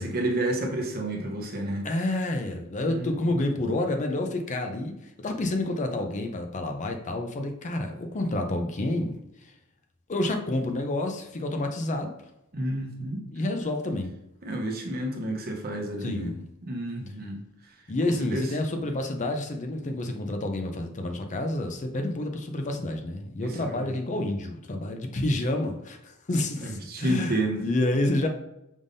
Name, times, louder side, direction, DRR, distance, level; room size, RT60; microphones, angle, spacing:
voice 1, 0.0-1.9 2.8-3.1 12.5-13.2 14.4-16.3 16.6-17.4 18.2-18.5 23.4-23.9 26.6-27.6, right 1 dB, 45° right, 1 dB, 0.8 m, -30 dB
voice 2, 1.8-9.2 10.1-12.1 13.3-14.1 16.0-16.5 17.9-28.3, left 1 dB, 35° left, 4 dB, 0.5 m, -29 dB
5.2 x 3.6 x 2.6 m, 0.84 s
head